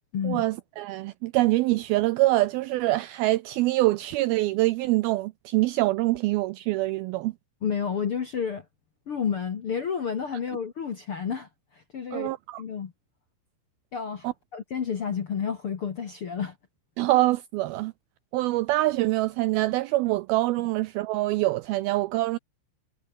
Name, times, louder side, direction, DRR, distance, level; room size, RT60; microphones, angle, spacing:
voice 1, 0.2-7.3 12.1-12.6 14.2-14.3 17.0-17.9 18.3-22.4, right 18 dB, 85° right, 2.2 m, -25 dB
voice 2, 7.6-8.6 9.1-12.3 12.6-12.9 13.9-16.5, left 7 dB, 55° left, 1.6 m, -30 dB
omnidirectional pair, 5.0 m